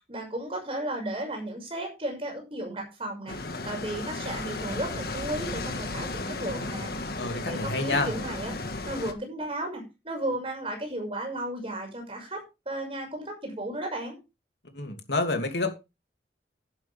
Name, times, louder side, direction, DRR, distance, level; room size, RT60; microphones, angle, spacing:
voice 1, 0.1-6.9 7.3-8.6 8.8-12.4 12.7-14.2, right 1 dB, 30° right, 6.1 m, -34 dB
sound 1, 3.3-9.1, left 2 dB, 60° left, 1.7 m, -34 dB
voice 2, 7.1-8.1 14.7-15.7, left 2 dB, 75° left, 2.7 m, -28 dB
11.5 x 11.5 x 3.5 m
head